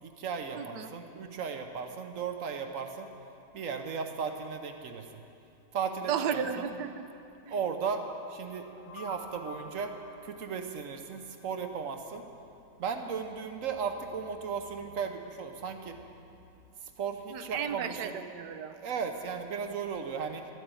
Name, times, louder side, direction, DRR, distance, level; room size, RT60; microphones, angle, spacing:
voice 1, 0.0-3.1 3.5-5.2 5.7-6.7 7.5-9.9 10.2-12.3 12.8-16.0 16.8-18.1 18.8-20.5, right 6 dB, 55° right, 6 dB, 1.1 m, -36 dB
voice 2, 0.5-0.9 6.1-7.1 7.4-7.6 17.3-18.8, right 8 dB, 75° right, 9 dB, 1.3 m, -34 dB
sound 1, 8.3-11.3, left 2 dB, 85° left, 2.1 m, -49 dB
13.0 x 8.0 x 9.1 m, 2.7 s
omnidirectional pair, 2.0 m